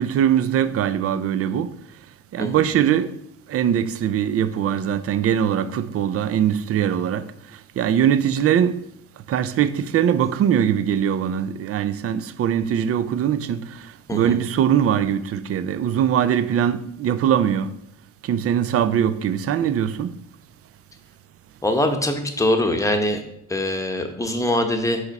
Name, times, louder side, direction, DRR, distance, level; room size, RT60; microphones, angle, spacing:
voice 1, 0.0-1.7 2.3-3.1 3.5-7.2 7.8-8.8 9.3-13.6 14.1-17.7 18.3-20.1, right 9 dB, 50° right, 0.5 m, -21 dB
voice 2, 21.6-23.2 23.5-25.0, left 1 dB, 10° left, 0.9 m, -22 dB
5.0 x 4.2 x 5.3 m
cardioid pair, 90°, 30 cm